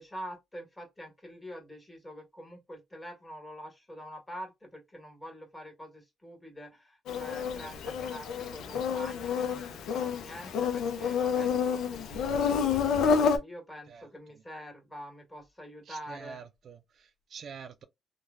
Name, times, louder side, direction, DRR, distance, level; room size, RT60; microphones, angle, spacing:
voice 1, 0.0-16.4, equal, 15° left, 1.5 m, -46 dB
Insect, 7.1-13.4, left 6 dB, 80° left, 0.5 m, -29 dB
voice 2, 15.9-17.8, right 6 dB, 60° right, 0.4 m, -46 dB
3.1 x 2.2 x 2.5 m
cardioid pair, 90°, 0 cm